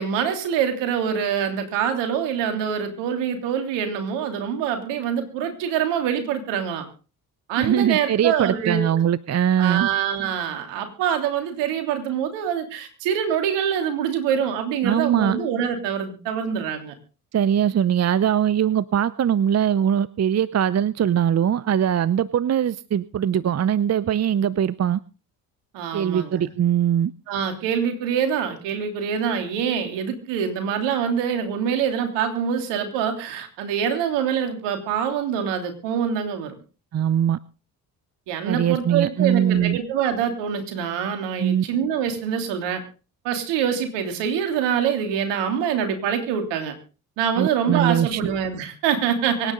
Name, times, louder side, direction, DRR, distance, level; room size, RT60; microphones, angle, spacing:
voice 1, 0.0-6.9 7.5-9.0 9.6-16.9 25.7-26.5 27.3-36.5 38.3-42.8 43.2-46.7 47.2-49.5, right 8 dB, 75° right, 6 dB, 3.3 m, -25 dB
voice 2, 7.6-9.9 14.8-15.4 17.3-25.0 25.9-27.1 36.9-37.4 38.5-39.8 41.4-41.6 47.4-48.2, right 9 dB, 35° right, 19 dB, 0.8 m, -21 dB
24.0 x 10.0 x 3.9 m, 0.35 s
hypercardioid pair, 50°, 43 cm